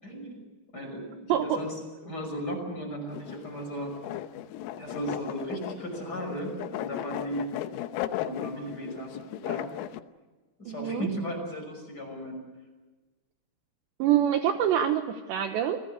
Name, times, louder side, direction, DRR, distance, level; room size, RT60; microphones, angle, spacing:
voice 1, 0.0-0.4 0.7-3.9 4.7-7.5 8.2-9.7 10.6-12.4, right 1 dB, 20° left, 3 dB, 5.8 m, -36 dB
sound 1, 3.1-10.0, left 13 dB, 85° left, 3.6 m, -36 dB
voice 2, 10.7-11.1 14.0-15.8, right 10 dB, 70° right, 6 dB, 2.9 m, -25 dB
29.5 x 20.0 x 8.3 m, 1.3 s
omnidirectional pair, 5.9 m